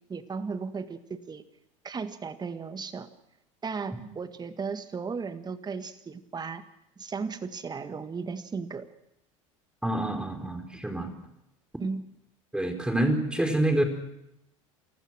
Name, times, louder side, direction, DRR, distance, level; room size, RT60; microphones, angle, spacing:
voice 1, 0.1-1.4 1.8-3.1 3.6-6.6 7.0-8.9 11.8-12.0, right 5 dB, 25° right, 10 dB, 1.7 m, -35 dB
voice 2, 9.8-11.1 12.5-13.8, right 1 dB, 5° right, 6 dB, 4.2 m, -27 dB
28.5 x 15.5 x 6.1 m, 0.82 s
hypercardioid pair, 80°, 17 cm